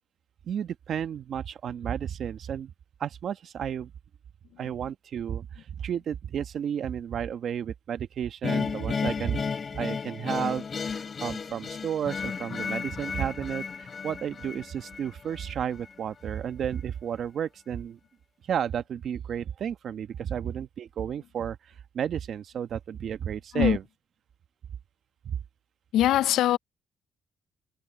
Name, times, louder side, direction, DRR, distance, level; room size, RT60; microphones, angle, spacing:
voice 1, 0.5-2.7 3.0-3.9 4.6-9.5 9.8-18.0 18.5-21.6 21.9-23.8 25.2-25.4, right 8 dB, 60° right, 1.3 m, -32 dB
sound 1, 8.4-15.5, left 5 dB, 40° left, 3.1 m, -33 dB
voice 2, 25.9-26.6, left 13 dB, 80° left, 0.4 m, -22 dB
cardioid pair, 85°, 0 cm